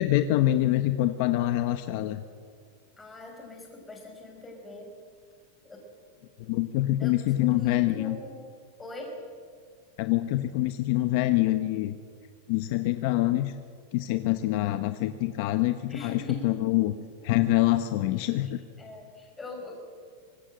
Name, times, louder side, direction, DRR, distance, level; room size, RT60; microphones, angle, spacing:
voice 1, 0.0-2.2 6.5-8.2 10.0-12.0 12.5-13.5 13.9-16.9 17.2-18.6, left 15 dB, 50° left, 9 dB, 1.0 m, -25 dB
voice 2, 3.0-4.9 5.6-5.8 7.0-8.5 8.8-9.2 15.9-16.8 18.8-19.8, left 2 dB, 10° left, 1 dB, 5.4 m, -42 dB
25.0 x 20.0 x 7.8 m, 2.2 s
supercardioid pair, 160°, 0 cm